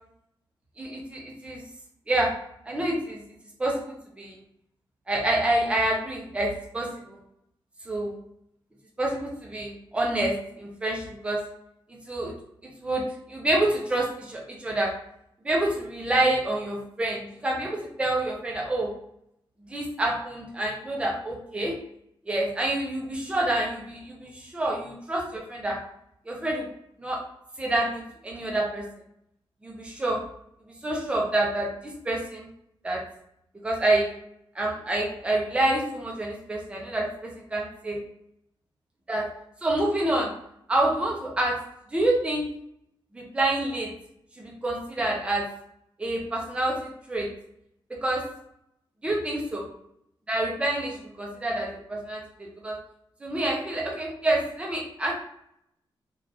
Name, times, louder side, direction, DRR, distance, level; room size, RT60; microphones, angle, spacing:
voice 1, 0.8-1.6 2.1-2.3 2.7-3.2 3.6-4.4 5.1-7.2 7.9-8.2 9.0-11.4 12.1-12.3 12.8-14.9 15.4-18.9 19.7-21.7 22.3-25.8 26.3-26.7 27.0-27.2 27.6-28.8 29.6-30.2 30.8-32.5 32.8-33.0 33.6-34.1 34.5-38.0 39.1-39.3 39.6-40.3 40.7-41.5 41.9-42.4 43.1-43.9 44.4-45.4 46.0-47.3 48.0-48.2 49.0-49.7 50.3-52.7 53.2-55.1, right 1 dB, 15° right, -2 dB, 0.6 m, -27 dB
3.2 x 2.5 x 2.7 m, 0.73 s
wide cardioid pair, 175°, 9 cm